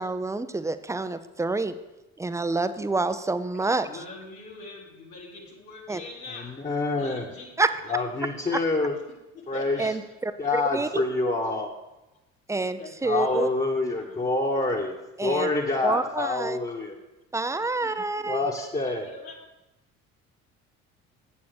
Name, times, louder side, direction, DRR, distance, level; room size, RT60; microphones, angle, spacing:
voice 1, 0.0-1.7 2.2-3.9 5.9-6.0 7.6-7.7 9.8-10.3 10.7-11.0 12.5-13.5 15.2-15.5 15.8-16.6 17.3-18.5, right 3 dB, 5° right, 11 dB, 0.6 m, -27 dB
voice 2, 3.6-7.5 7.9-8.0 9.3-9.9 12.8-13.5 13.9-14.2 15.4-15.8 17.6-18.0 18.8-19.3, left 3 dB, 80° left, -4 dB, 1.9 m, -44 dB
voice 3, 6.3-7.3 7.9-9.0 9.5-9.9 10.4-11.7 13.0-15.0 15.2-17.0 18.3-19.0, left 3 dB, 20° left, -2 dB, 1.5 m, -27 dB
8.2 x 7.2 x 6.6 m, 0.98 s
figure-of-eight pair, 50°, 41 cm